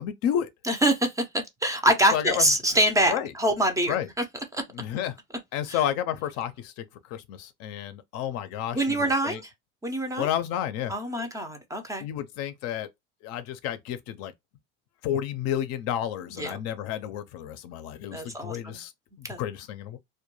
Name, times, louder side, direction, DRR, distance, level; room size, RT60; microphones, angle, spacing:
voice 1, 0.0-0.5 2.1-2.5 3.1-3.3 3.9-4.1 4.7-5.2 5.5-9.4 10.2-10.9 12.0-12.9 13.2-14.3 15.0-18.9 19.2-20.0, left 10 dB, 55° left, 0.5 m, -31 dB
voice 2, 0.7-4.0 4.5-4.6 5.7-5.8 8.7-9.5 9.8-10.3 10.9-12.0 16.4-16.6 18.1-18.8 19.3-19.4, right 1 dB, 10° right, 0.4 m, -25 dB
2.2 x 2.2 x 3.0 m
supercardioid pair, 125°, 29 cm